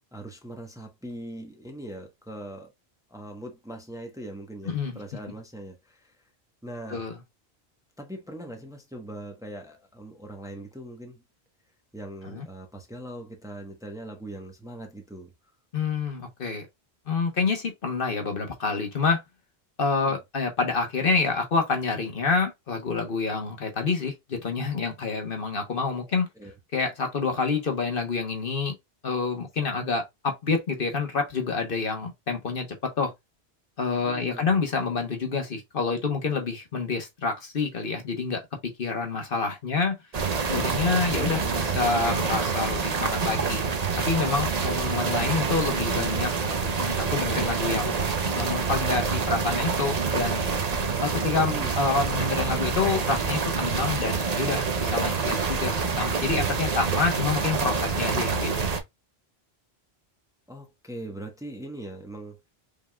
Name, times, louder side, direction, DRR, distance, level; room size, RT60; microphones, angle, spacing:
voice 1, 0.1-2.7 3.1-6.2 6.6-7.1 8.0-11.2 11.9-15.3 19.9-20.1 26.4-26.5 34.0-34.5 41.1-41.6 51.5-51.7 60.5-62.5, right 1 dB, 5° right, 1.0 m, -41 dB
voice 2, 15.7-16.7 17.1-19.2 19.8-26.3 26.7-28.7 29.0-33.1 33.8-38.4 38.8-40.0 40.5-43.6 44.1-46.3 46.8-48.0 48.3-50.4 51.0-58.7, left 4 dB, 60° left, 1.3 m, -27 dB
sound 1, 40.1-58.8, right 5 dB, 45° right, 0.8 m, -27 dB
5.3 x 3.6 x 2.3 m
omnidirectional pair, 1.1 m